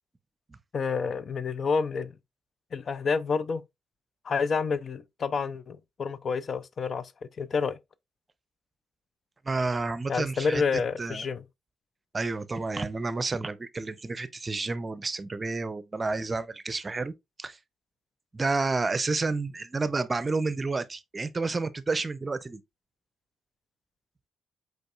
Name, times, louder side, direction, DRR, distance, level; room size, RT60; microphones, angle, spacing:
voice 1, 0.7-2.1 2.7-3.6 4.2-7.1 7.4-7.8 10.1-11.4, left 5 dB, 50° left, 0.4 m, -29 dB
voice 2, 9.4-10.6 11.0-11.2 12.1-17.1 17.4-17.6 18.3-22.6, right 3 dB, 30° right, 0.6 m, -30 dB
5.2 x 3.9 x 2.4 m
hypercardioid pair, 50°, 0 cm